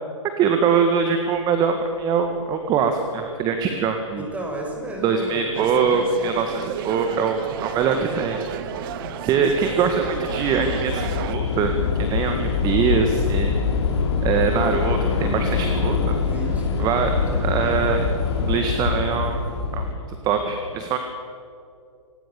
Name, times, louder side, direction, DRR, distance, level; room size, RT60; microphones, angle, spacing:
voice 1, 0.4-4.3 5.0-8.4 9.2-11.7 12.0-13.5 14.2-16.2 16.8-17.1 17.4-18.1 18.4-19.4 19.7-19.9 20.2-21.0, right 6 dB, 25° right, 6 dB, 1.8 m, -23 dB
voice 2, 4.2-5.7 16.1-17.8, right 1 dB, 10° right, 0 dB, 6.2 m, -34 dB
sound 1, 5.5-11.4, right 9 dB, 45° right, 1.4 m, -32 dB
Train / Subway metro underground, 5.9-6.0 6.8-7.1 7.4-19.9, left 5 dB, 55° left, 4.5 m, -25 dB
26.5 x 19.5 x 7.1 m, 2.4 s
hypercardioid pair, 135°, 17 cm